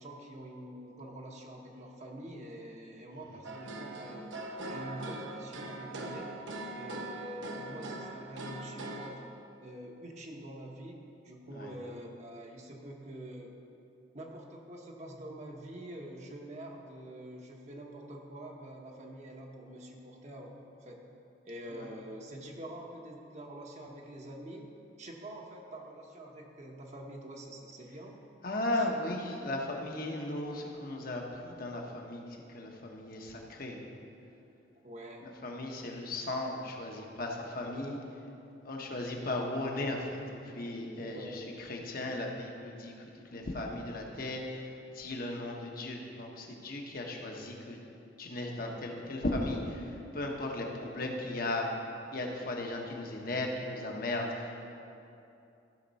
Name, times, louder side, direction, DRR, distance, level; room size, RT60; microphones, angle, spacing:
voice 1, 0.0-4.3 4.6-6.3 6.7-9.3 9.6-13.5 14.1-21.0 21.4-24.7 25.0-28.2 28.7-28.9 34.8-35.3 35.7-36.0 41.0-41.5 50.6-50.9, right 1 dB, 40° right, 0 dB, 1.0 m, -46 dB
sound 1, 3.4-9.1, right 2 dB, 90° right, 0.9 m, -41 dB
voice 2, 28.4-32.2 32.5-33.8 35.2-38.0 38.6-42.9 43.3-47.8 48.2-51.7 52.1-54.7, left 1 dB, 50° left, 1 dB, 1.1 m, -36 dB
15.0 x 5.8 x 4.1 m, 2.7 s
head